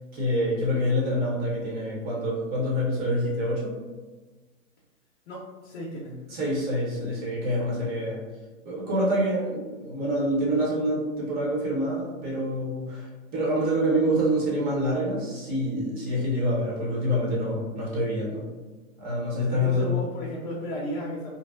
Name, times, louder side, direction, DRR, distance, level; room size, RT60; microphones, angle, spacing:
voice 1, 0.1-3.7 6.3-8.2 8.6-18.4 19.0-20.0, equal, 25° right, -5 dB, 0.7 m, -26 dB
voice 2, 5.3-6.2 19.4-21.3, equal, 45° left, -4 dB, 0.6 m, -34 dB
2.6 x 2.1 x 2.2 m, 1.3 s
hypercardioid pair, 120°, 41 cm